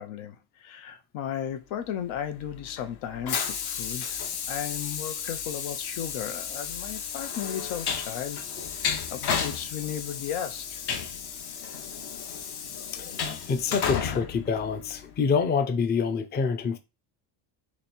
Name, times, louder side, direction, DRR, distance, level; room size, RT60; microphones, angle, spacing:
voice 1, 0.0-4.2 4.5-8.5 8.7-10.8, left 9 dB, 80° left, 0.9 m, -35 dB
Train, 2.1-15.3, left 7 dB, 55° left, 0.9 m, -33 dB
voice 2, 12.8-16.8, left 5 dB, 20° left, 0.4 m, -27 dB
3.2 x 2.8 x 4.3 m
cardioid pair, 120°, 47 cm